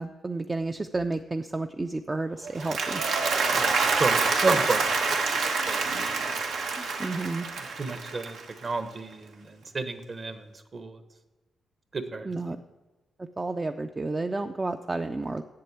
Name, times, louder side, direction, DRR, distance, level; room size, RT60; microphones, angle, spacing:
voice 1, 0.0-3.0 6.8-7.5 12.3-12.6 13.4-15.4, right 2 dB, 25° right, 7 dB, 0.4 m, -31 dB
Applause, 2.4-8.8, right 4 dB, 85° right, 1.4 m, -27 dB
voice 2, 3.5-4.9 5.3-6.3 7.6-11.0 11.9-12.3, right 3 dB, 40° right, 9 dB, 1.0 m, -32 dB
7.6 x 7.5 x 8.3 m, 1.1 s
cardioid pair, 95°, 0 cm